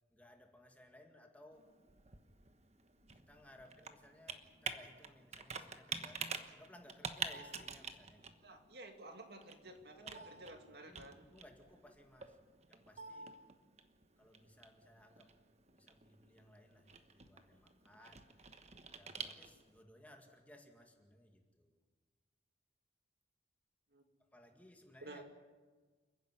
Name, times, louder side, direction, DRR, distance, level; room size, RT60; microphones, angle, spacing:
voice 1, 0.1-1.7 3.1-8.5 9.7-10.4 10.9-12.4 12.7-13.3 14.2-15.3 15.8-18.3 18.9-21.8 24.2-25.3, left 1 dB, 10° left, 3 dB, 2.0 m, -61 dB
Computer keyboard, 1.5-19.8, right 5 dB, 35° right, 1.2 m, -48 dB
voice 2, 8.4-11.3 23.9-24.0 25.0-25.3, right 2 dB, 60° right, 5 dB, 2.2 m, -53 dB
29.0 x 10.5 x 9.7 m, 1.4 s
head